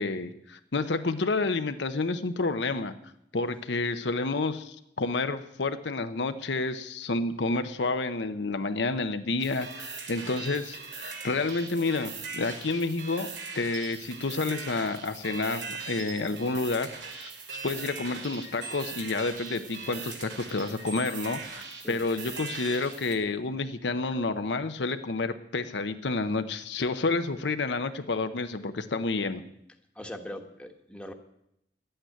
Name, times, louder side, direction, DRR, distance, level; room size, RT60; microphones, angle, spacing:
voice 1, 0.0-2.9 3.3-16.9 17.2-17.3 17.6-29.4, left 3 dB, 75° left, 9 dB, 0.8 m, -30 dB
sound 1, 9.4-23.1, right 5 dB, 80° right, 2.5 m, -40 dB
voice 2, 30.0-31.1, left 1 dB, 5° left, 4 dB, 1.2 m, -41 dB
11.5 x 8.8 x 9.0 m, 0.79 s
head